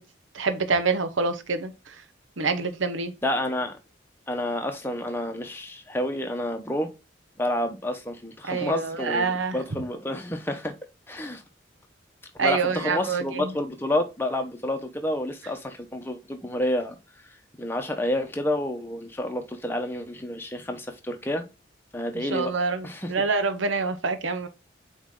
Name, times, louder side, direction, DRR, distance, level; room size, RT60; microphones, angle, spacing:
voice 1, 0.3-1.9 2.4-3.1 8.4-9.6 12.4-13.5 22.1-24.5, right 4 dB, 85° right, 0.9 m, -26 dB
voice 2, 3.2-3.8 4.3-6.9 7.4-10.7 11.1-11.4 12.4-17.0 17.6-21.4 21.9-22.5 22.8-23.1, left 1 dB, 10° left, 0.8 m, -29 dB
7.9 x 3.1 x 3.8 m
head